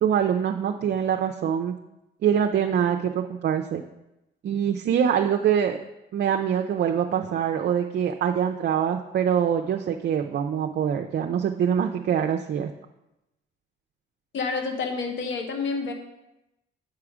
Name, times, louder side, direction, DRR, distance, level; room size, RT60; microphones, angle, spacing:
voice 1, 0.0-1.7 2.2-3.8 4.4-5.8 6.1-12.7, right 8 dB, 55° right, 3 dB, 0.5 m, -24 dB
voice 2, 14.3-15.9, left 4 dB, 70° left, 5 dB, 1.0 m, -28 dB
7.9 x 4.8 x 4.9 m, 0.92 s
cardioid pair, 90°, 20 cm